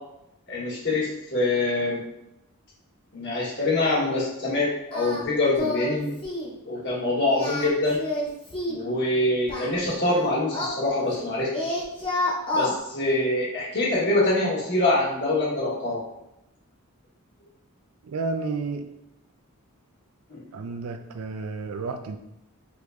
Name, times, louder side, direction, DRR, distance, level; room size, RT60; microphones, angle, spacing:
voice 1, 0.5-2.0 3.1-6.1 6.6-8.0 8.6-11.8 12.5-16.0 20.3-20.4, left 2 dB, 55° left, -5 dB, 1.4 m, -25 dB
Singing, 4.9-5.2 5.6-6.0 6.2-6.5 7.3-8.9 9.5-11.3 11.5-12.7, left 2 dB, 25° left, 0.8 m, -29 dB
voice 2, 18.0-18.8 20.5-22.2, right 4 dB, 80° right, 7 dB, 0.4 m, -31 dB
5.0 x 3.0 x 2.5 m, 0.87 s
head